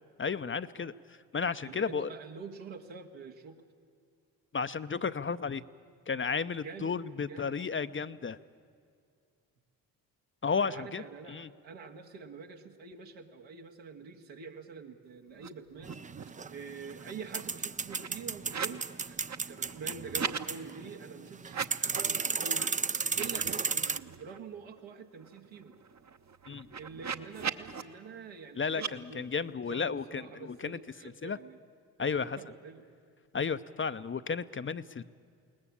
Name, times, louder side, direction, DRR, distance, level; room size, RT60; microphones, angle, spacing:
voice 1, 0.2-2.1 4.5-5.6 6.1-8.4 10.4-11.5 26.5-26.7 28.6-30.8 31.2-31.4 32.0-32.4 33.3-35.0, left 5 dB, 30° left, 12 dB, 0.6 m, -33 dB
voice 2, 1.6-3.6 6.6-7.0 7.3-7.6 10.6-19.2 19.5-25.8 26.8-31.6 32.1-32.8, right 5 dB, 80° right, 2 dB, 2.0 m, -46 dB
sound 1, 15.3-15.5 15.7-16.4 16.8-18.8 19.1-20.5 21.4-22.1 22.5-22.7 23.0-24.4 24.8-24.9 25.1-27.8 28.7-28.9, right 6 dB, 40° right, 1.0 m, -40 dB
sound 2, 15.8-24.0, right 5 dB, 20° right, 0.5 m, -34 dB
21.5 x 19.0 x 8.5 m, 2.3 s
supercardioid pair, 55°, 44 cm